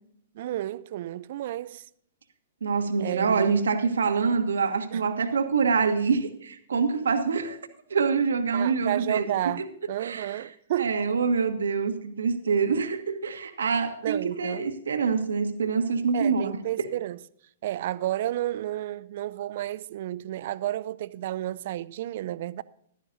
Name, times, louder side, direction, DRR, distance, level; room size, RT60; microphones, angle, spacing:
voice 1, 0.3-1.9 3.0-3.5 4.9-5.0 8.5-11.0 14.0-14.7 16.1-17.2 17.6-22.6, right 13 dB, 55° right, 0.5 m, -31 dB
voice 2, 2.6-7.6 7.9-9.3 9.6-9.7 10.0-10.3 10.8-16.6, right 5 dB, 70° right, 1.4 m, -25 dB
15.0 x 12.5 x 2.7 m
figure-of-eight pair, 115°, 0 cm